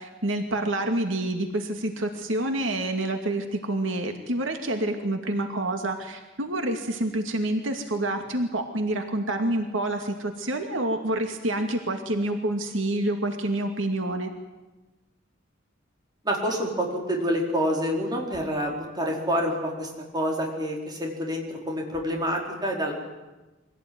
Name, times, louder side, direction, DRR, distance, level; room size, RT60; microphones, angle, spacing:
voice 1, 0.0-14.3, right 1 dB, 80° right, 5 dB, 2.5 m, -28 dB
voice 2, 16.2-22.9, equal, 20° right, 0 dB, 4.8 m, -27 dB
24.5 x 17.0 x 9.6 m, 1.1 s
head